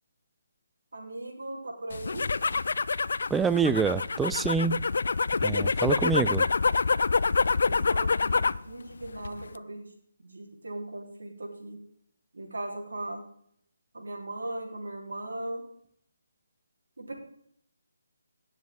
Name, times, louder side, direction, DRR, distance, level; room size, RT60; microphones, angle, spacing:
voice 1, 0.9-2.3 7.3-9.9 10.2-11.8 12.3-13.2 13.9-15.6 17.0-17.1, right 1 dB, 75° right, 0 dB, 3.9 m, -38 dB
sound 1, 1.9-8.7 9.0-9.6, left 4 dB, 65° left, 0.4 m, -26 dB
voice 2, 3.3-4.8 5.4-6.5, right 5 dB, 5° right, 13 dB, 0.4 m, -26 dB
18.0 x 7.3 x 3.8 m, 0.67 s
figure-of-eight pair, 155°, 0 cm